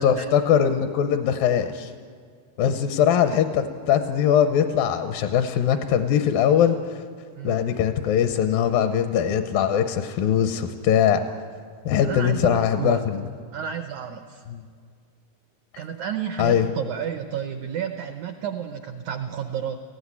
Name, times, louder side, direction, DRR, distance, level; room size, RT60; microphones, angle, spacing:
voice 1, 0.0-1.9 2.6-7.0 7.4-11.2 11.9-13.2 14.5-14.6 16.4-16.7, left 9 dB, 80° left, 8 dB, 2.4 m, -21 dB
voice 2, 12.0-13.0 13.5-14.4 15.8-19.8, right 8 dB, 85° right, 7 dB, 1.6 m, -31 dB
18.0 x 15.5 x 9.7 m, 2.1 s
omnidirectional pair, 4.4 m